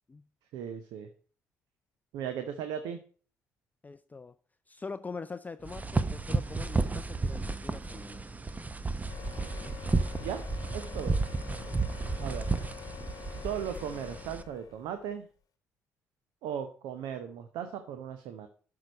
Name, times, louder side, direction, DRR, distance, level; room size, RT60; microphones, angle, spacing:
voice 1, 0.5-1.1 2.1-3.0 10.2-10.4 10.7-11.2 12.2-12.5 13.4-15.3 16.4-18.5, right 8 dB, 65° right, 0.8 m, -37 dB
voice 2, 3.8-4.3 4.7-8.2 9.2-9.7 11.2-11.3 11.7-11.8, left 4 dB, 20° left, 0.4 m, -44 dB
sound 1, 5.6-14.4, right 3 dB, 20° right, 0.8 m, -32 dB
sound 2, 9.1-15.0, left 7 dB, 50° left, 1.1 m, -45 dB
11.5 x 4.8 x 5.3 m
figure-of-eight pair, 45°, 8 cm